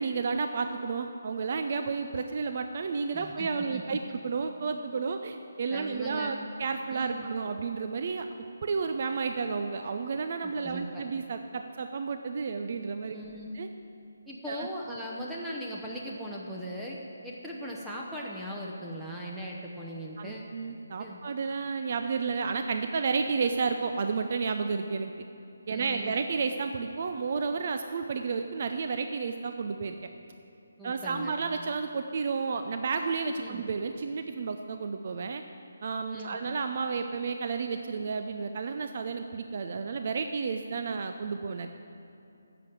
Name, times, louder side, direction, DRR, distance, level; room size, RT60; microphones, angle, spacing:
voice 1, 0.0-8.3 8.6-13.2 13.5-13.7 14.5-14.7 20.2-25.1 25.7-30.0 30.8-35.4 35.8-41.7, right 5 dB, 45° right, 7 dB, 0.5 m, -31 dB
voice 2, 3.1-3.8 5.7-6.5 6.9-7.3 10.4-11.0 13.1-13.6 14.3-20.5 21.0-21.2 25.7-26.1 30.8-31.3 33.4-33.6 36.1-36.4, equal, 5° right, -4 dB, 0.8 m, -39 dB
10.5 x 7.1 x 7.8 m, 2.7 s
figure-of-eight pair, 150°, 0 cm